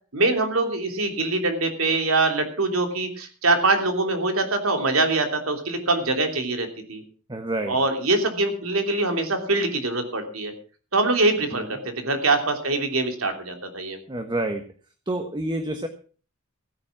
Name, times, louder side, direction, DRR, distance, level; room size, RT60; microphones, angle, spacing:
voice 1, 0.1-7.0 7.7-10.5 10.9-14.0, right 2 dB, 80° right, 5 dB, 3.1 m, -23 dB
voice 2, 7.3-7.8 11.5-11.8 14.1-14.7 15.1-15.9, right 1 dB, 20° right, 6 dB, 1.2 m, -28 dB
16.0 x 9.4 x 5.9 m, 0.39 s
head